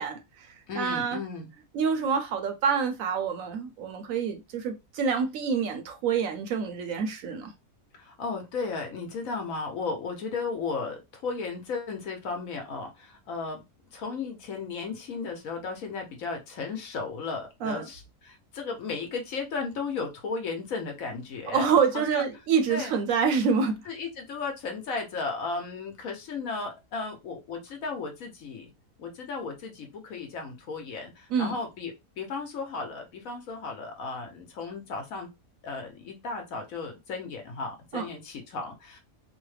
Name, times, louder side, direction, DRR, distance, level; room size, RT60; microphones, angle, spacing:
voice 1, 0.0-1.2 1.7-7.5 17.6-17.9 21.5-23.8 31.3-31.6 37.9-38.1, right 6 dB, 70° right, 0.9 m, -27 dB
voice 2, 0.7-1.5 7.9-13.6 13.9-21.7 21.9-22.3 22.7-22.9 23.9-28.7 29.0-35.3 35.6-39.0, left 4 dB, 65° left, 1.2 m, -35 dB
3.1 x 2.1 x 3.2 m
omnidirectional pair, 1.6 m